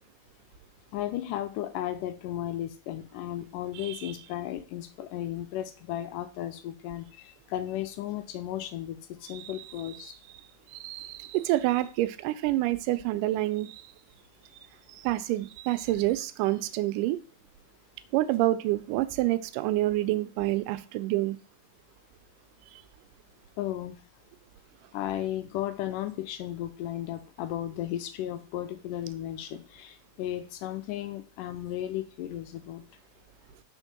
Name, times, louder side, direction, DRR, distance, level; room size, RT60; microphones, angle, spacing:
voice 1, 0.9-10.1 23.6-24.0 24.9-32.8, left 12 dB, 90° left, 2.3 m, -35 dB
voice 2, 10.7-13.8 15.0-17.2 18.1-21.4, right 16 dB, 85° right, 2.2 m, -27 dB
4.7 x 4.4 x 5.9 m
omnidirectional pair, 3.7 m